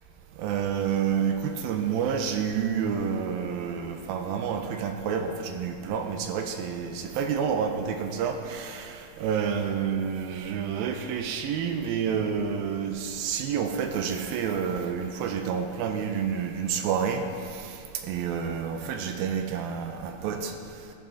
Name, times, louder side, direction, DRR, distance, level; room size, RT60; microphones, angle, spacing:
voice 1, 0.4-17.2 17.6-17.8 18.0-20.5, right 7 dB, 85° right, 5 dB, 2.4 m, -29 dB
14.5 x 7.7 x 3.7 m, 2.5 s
omnidirectional pair, 4.2 m